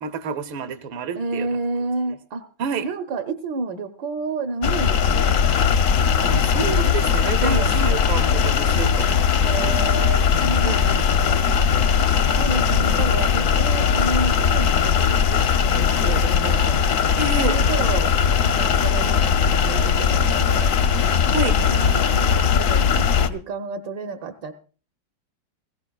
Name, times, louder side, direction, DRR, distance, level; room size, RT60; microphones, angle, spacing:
voice 1, 0.0-1.5 2.6-2.9 6.2-9.2 9.6-10.2 10.6-11.1 12.9-13.0 17.2-17.6 21.3-21.6, right 5 dB, 85° right, 8 dB, 1.8 m, -29 dB
voice 2, 1.1-2.4 2.8-5.4 7.4-8.0 9.4-11.6 12.4-16.8 17.4-18.1 18.4-20.7 21.5-24.5, right 3 dB, 70° right, 6 dB, 1.5 m, -30 dB
sound 1, 4.6-23.3, left 7 dB, 65° left, 0.8 m, -19 dB
19.0 x 16.5 x 2.3 m, 0.38 s
omnidirectional pair, 2.1 m